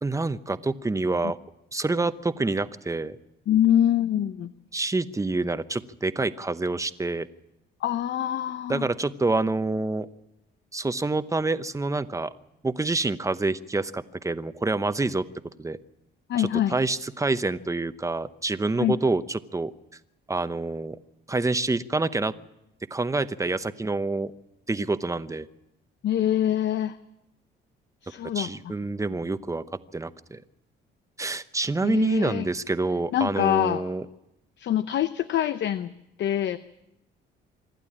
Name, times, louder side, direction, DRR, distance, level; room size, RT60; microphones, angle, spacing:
voice 1, 0.0-1.4 1.7-3.2 4.7-7.3 8.7-10.1 10.7-12.3 12.6-15.2 15.6-15.8 16.4-19.7 20.3-21.0 21.3-22.3 22.9-24.3 24.7-25.5 28.3-29.6 29.9-30.4 31.2-34.0, right 3 dB, 15° right, 12 dB, 0.9 m, -27 dB
voice 2, 3.5-4.5 7.8-8.9 16.3-16.8 18.8-19.0 26.0-27.0 28.0-28.7 31.8-32.5 33.1-33.8 34.6-35.9 36.2-36.6, left 11 dB, 65° left, 12 dB, 0.7 m, -25 dB
25.5 x 12.0 x 8.7 m, 0.88 s
cardioid pair, 90°, 20 cm